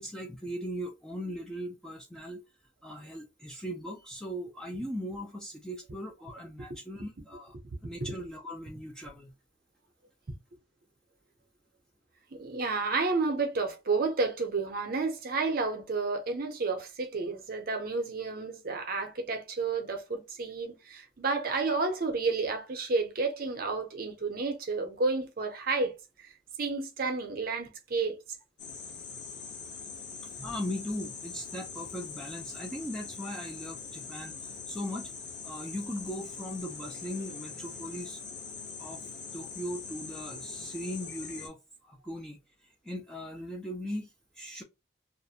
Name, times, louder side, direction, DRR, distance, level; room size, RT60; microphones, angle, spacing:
voice 1, 0.0-2.4 2.8-7.5 7.8-9.3 30.4-35.1 35.4-38.2 38.8-39.0 39.3-41.6 41.8-42.4 42.8-44.6, equal, 5° left, 0.3 m, -39 dB
voice 2, 12.3-25.9 26.2-26.3 26.6-28.2, right 3 dB, 50° right, 0.6 m, -31 dB
sound 1, 28.6-41.5, left 5 dB, 65° left, 0.7 m, -42 dB
2.4 x 2.1 x 2.7 m
head